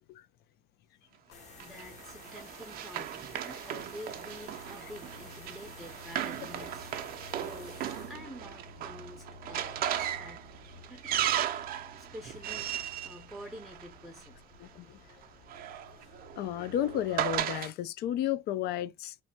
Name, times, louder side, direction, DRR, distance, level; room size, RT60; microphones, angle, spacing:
sound 1, 1.3-17.4, left 4 dB, 40° left, 0.8 m, -52 dB
voice 1, 1.3-10.5 10.9-11.2 12.0-14.4, equal, ahead, 0.5 m, -48 dB
Run, 1.6-14.2 15.2-17.7, right 11 dB, 60° right, 0.4 m, -36 dB
voice 2, 14.6-15.0 16.4-19.2, left 11 dB, 70° left, 0.4 m, -33 dB
3.2 x 2.1 x 2.6 m
cardioid pair, 110°, 17 cm